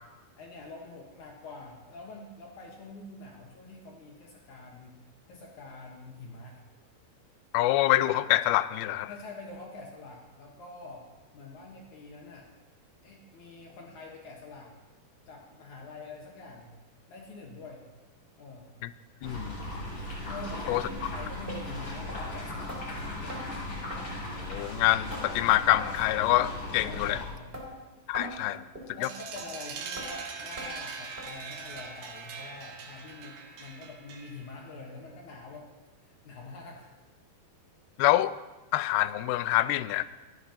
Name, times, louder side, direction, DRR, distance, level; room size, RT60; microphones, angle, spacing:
voice 1, 0.4-5.0 5.3-6.6 9.1-12.5 13.0-14.7 15.3-16.7 17.1-17.8 18.4-18.7 20.2-23.5 26.8-27.6 28.4-28.6 29.0-35.7 36.0-36.9, left 3 dB, 60° left, 0 dB, 2.2 m, -45 dB
voice 2, 7.5-9.1 18.8-18.9 19.2-19.6 20.7-20.8 24.5-27.2 28.1-28.6 29.0-29.1 38.0-38.3 38.7-40.0, left 15 dB, 80° left, 14 dB, 2.4 m, -25 dB
sound 1, 19.2-27.2, left 1 dB, 30° left, 5.9 m, -38 dB
sound 2, 20.9-21.0 21.5-21.6 22.1-22.2 22.7-22.8 23.3-23.4 23.9-24.0 24.5-24.6 25.1-25.2 25.7-25.9 26.3-26.5 26.9-27.0 27.5-27.7 28.1-28.3 28.7-28.9 29.4-29.5 30.0-30.1 30.6-30.7 31.2-31.3 31.8-31.9 32.4-32.5 33.0-33.1 33.6-33.7, equal, 15° right, 2.4 m, -40 dB
sound 3, 29.0-34.6, right 5 dB, 80° right, 3.4 m, -41 dB
27.0 x 11.0 x 2.9 m, 1.2 s
omnidirectional pair, 4.6 m